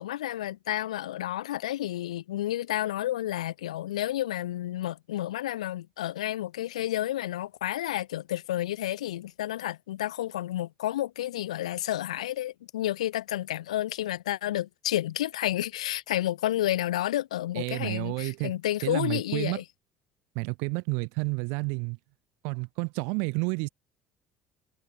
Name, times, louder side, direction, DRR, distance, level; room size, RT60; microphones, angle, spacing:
voice 1, 0.0-19.6, left 13 dB, 80° left, 0.5 m, -31 dB
voice 2, 17.6-18.5 18.8-19.6 20.4-22.0 22.4-23.7, right 36 dB, 65° right, 0.6 m, -30 dB
figure-of-eight pair, 60°, 4 cm